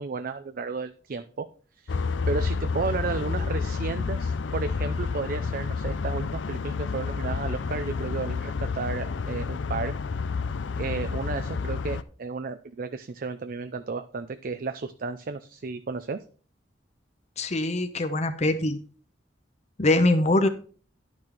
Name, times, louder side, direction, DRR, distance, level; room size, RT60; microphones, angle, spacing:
voice 1, 0.0-1.5 1.8-10.0 10.7-16.2, right 4 dB, 50° right, 10 dB, 0.5 m, -33 dB
sound 1, 1.9-12.0, left 4 dB, 85° left, 0.5 m, -29 dB
voice 2, 17.4-18.8 19.8-20.5, left 2 dB, 35° left, 8 dB, 0.8 m, -23 dB
10.5 x 6.1 x 4.4 m, 0.40 s
head